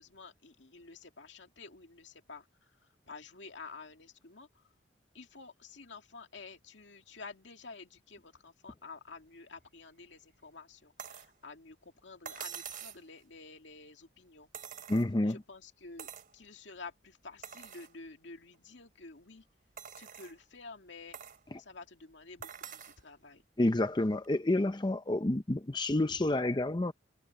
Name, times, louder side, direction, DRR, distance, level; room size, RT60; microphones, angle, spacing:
voice 1, 0.0-4.7 5.1-14.5 15.2-19.5 19.9-21.2 21.6-23.4, left 4 dB, 75° left, 2.2 m, -50 dB
sound 1, 11.0-11.3 12.3-13.0 14.5-15.3 16.0-16.3 16.8-16.9 17.4-17.9 18.5-18.6 19.8-20.4 21.1-21.4 22.4-23.0 24.2-24.3, right 8 dB, 50° right, 2.6 m, -45 dB
voice 2, 14.9-15.4 23.6-26.9, left 1 dB, 25° left, 0.6 m, -29 dB
head